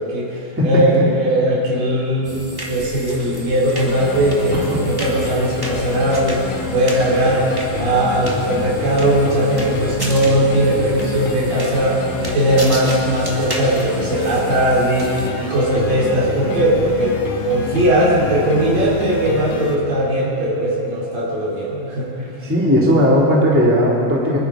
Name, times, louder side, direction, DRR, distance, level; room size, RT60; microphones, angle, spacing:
voice 1, 0.0-22.3, right 1 dB, 70° right, -5 dB, 5.0 m, -19 dB
sound 1, 2.2-15.3, equal, 20° right, 0.5 m, -33 dB
sound 2, 3.8-19.8, left 5 dB, 65° left, 2.1 m, -28 dB
voice 2, 22.4-24.4, equal, 5° right, -4 dB, 1.7 m, -16 dB
25.0 x 11.0 x 4.9 m, 3.0 s
omnidirectional pair, 4.0 m